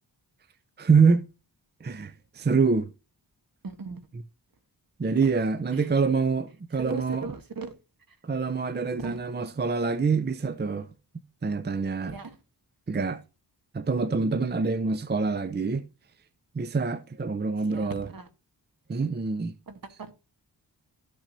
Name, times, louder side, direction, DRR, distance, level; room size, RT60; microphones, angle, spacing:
voice 1, 0.8-1.2 1.8-2.9 5.0-7.3 8.2-10.9 11.4-12.2 12.9-13.2 13.7-15.8 16.5-18.1 18.9-19.5, right 4 dB, 25° right, 0.5 m, -25 dB
voice 2, 3.6-4.1 5.2-5.3 5.7-5.9 6.7-7.7 8.1-8.2 9.0-9.2 12.1-12.4 17.7-18.3 19.7-20.1, right 4 dB, 55° right, 1.4 m, -38 dB
13.5 x 5.9 x 2.7 m
wide cardioid pair, 85°, 42 cm